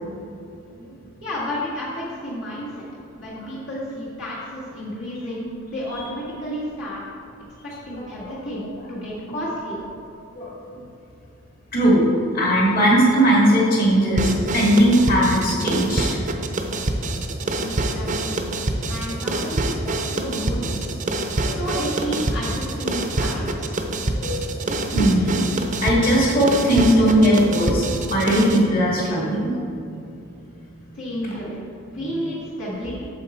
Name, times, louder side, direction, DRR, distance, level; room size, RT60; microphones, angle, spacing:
voice 1, 1.2-2.8 3.1-7.0 7.6-9.8 17.6-18.5 18.9-20.9 21.5-23.8 30.9-31.6 31.9-33.0, equal, 60° left, -8 dB, 1.9 m, -31 dB
voice 2, 7.9-8.6 10.3-10.5 11.7-12.0 12.3-16.2 21.4-21.6 24.0-25.4 25.8-29.5, right 1 dB, 45° left, -5 dB, 2.2 m, -19 dB
sound 1, 14.2-28.6, right 2 dB, 35° right, 0.6 m, -26 dB
8.8 x 7.0 x 4.4 m, 2.7 s
head